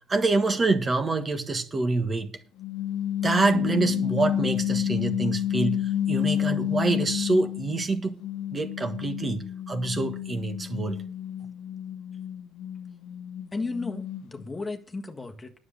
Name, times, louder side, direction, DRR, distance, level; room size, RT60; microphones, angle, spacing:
voice 1, 0.1-2.3 3.2-8.2 8.5-11.0, right 3 dB, 30° right, 1.5 m, -26 dB
sound 1, 2.6-7.8 8.2-14.4, left 11 dB, 75° left, 1.2 m, -30 dB
Bass guitar, 3.5-7.2, right 6 dB, 55° right, 2.9 m, -41 dB
voice 2, 13.5-15.5, left 3 dB, 20° left, 1.6 m, -34 dB
9.6 x 7.6 x 6.8 m
supercardioid pair, 85°, 0 cm